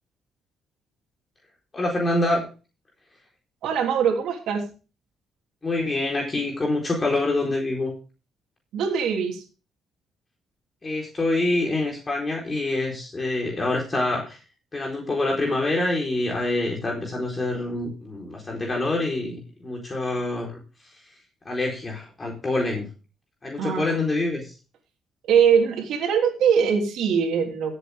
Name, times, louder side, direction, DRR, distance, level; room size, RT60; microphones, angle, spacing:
voice 1, 1.7-2.5 5.6-7.9 10.8-14.4 14.7-20.6 21.4-22.9 23.4-24.5, left 2 dB, 25° left, -1 dB, 4.3 m, -26 dB
voice 2, 3.6-4.7 8.7-9.4 23.6-24.0 25.3-27.7, right 7 dB, 80° right, 2 dB, 3.1 m, -22 dB
15.5 x 8.1 x 3.6 m, 0.33 s
cardioid pair, 80°, 0 cm